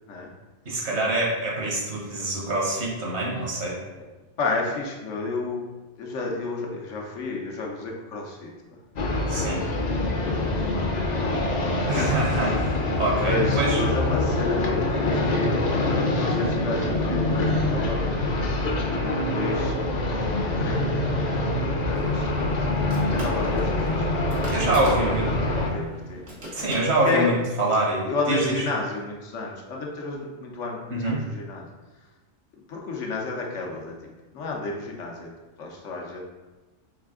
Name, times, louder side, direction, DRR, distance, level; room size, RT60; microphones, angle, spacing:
voice 1, 0.6-3.8 9.3-9.6 11.9-13.8 24.5-25.2 26.5-27.3 27.6-28.4 30.9-31.2, right 2 dB, 70° right, -3 dB, 1.3 m, -25 dB
voice 2, 4.4-5.7 6.0-8.5 9.1-9.6 10.2-11.2 11.5-12.6 13.1-15.4 15.7-18.2 18.6-19.8 20.3-22.3 22.9-24.3 24.7-26.2 26.5-26.6 27.0-27.3 28.0-31.7 32.7-33.9 34.3-35.3 35.6-36.2, left 3 dB, 90° left, -1 dB, 1.1 m, -32 dB
sound 1, 9.0-25.7, left 2 dB, 50° left, 0.6 m, -25 dB
sound 2, 21.9-27.5, right 1 dB, 85° right, 1.6 m, -41 dB
3.8 x 3.3 x 3.6 m, 1.2 s
omnidirectional pair, 1.2 m